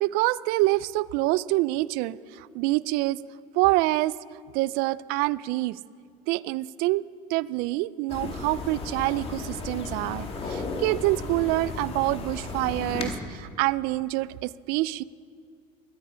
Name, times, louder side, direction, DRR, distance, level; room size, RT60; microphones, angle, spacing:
voice 1, 0.0-3.2 3.5-4.2 4.5-5.8 6.3-7.0 7.3-15.0, right 19 dB, 65° right, 20 dB, 0.4 m, -26 dB
sound 1, 8.1-13.2, left 3 dB, 35° left, 2.1 m, -34 dB
22.5 x 11.5 x 5.0 m, 2.3 s
supercardioid pair, 115°, 17 cm